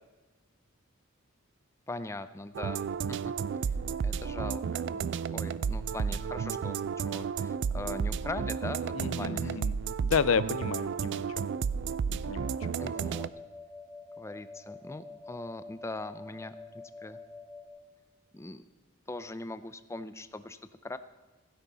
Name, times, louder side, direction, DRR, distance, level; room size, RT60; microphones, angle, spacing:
voice 1, 1.9-3.2 4.0-5.0 5.3-9.6 12.8-13.3 14.2-16.6 17.0-17.2 18.3-18.6 19.1-21.0, left 2 dB, 15° left, 12 dB, 0.4 m, -41 dB
sound 1, 2.5-13.3, right 6 dB, 60° right, 0.3 m, -32 dB
voice 2, 8.9-11.5 12.1-12.8, left 6 dB, 70° left, 17 dB, 0.5 m, -32 dB
sound 2, 12.3-17.7, left 3 dB, 30° left, 3.4 m, -48 dB
16.0 x 10.0 x 4.1 m, 1.3 s
head